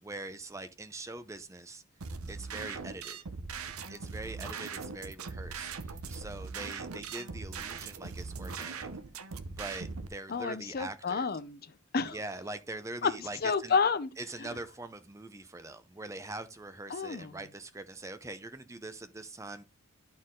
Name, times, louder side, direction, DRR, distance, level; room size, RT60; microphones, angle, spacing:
voice 1, 0.0-1.8 2.3-3.2 3.9-8.9 9.5-11.3 12.1-13.8 14.2-19.6, right 2 dB, 15° right, 0.5 m, -43 dB
sound 1, 2.0-10.1, right 4 dB, 80° right, 0.7 m, -40 dB
voice 2, 10.3-12.2 13.0-14.1 14.4-14.5 16.9-17.4, left 5 dB, 45° left, 0.5 m, -30 dB
11.0 x 4.4 x 3.7 m
head